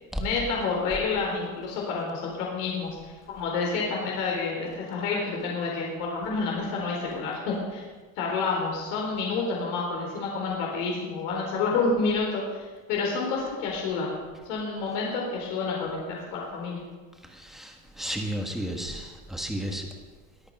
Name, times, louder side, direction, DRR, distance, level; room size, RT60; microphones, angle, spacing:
voice 1, 0.2-7.8 8.2-14.1 14.5-16.9, left 4 dB, 80° left, -2 dB, 4.1 m, -29 dB
voice 2, 17.3-19.9, right 1 dB, ahead, 2 dB, 1.4 m, -33 dB
22.0 x 8.6 x 5.4 m, 1.4 s
cardioid pair, 170°, 36 cm